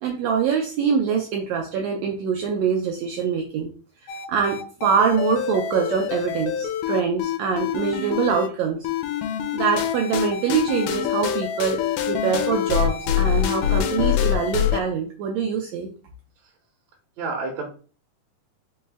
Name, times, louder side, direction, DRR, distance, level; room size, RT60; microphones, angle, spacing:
voice 1, 0.0-3.7 4.3-8.9 9.5-15.9, right 6 dB, 85° right, 2 dB, 1.5 m, -24 dB
sound 1, 4.1-8.5 8.8-14.8, left 10 dB, 80° left, 2.0 m, -25 dB
voice 2, 17.2-17.7, right 3 dB, 70° right, 0 dB, 1.7 m, -30 dB
5.6 x 2.1 x 3.3 m, 0.38 s
omnidirectional pair, 3.7 m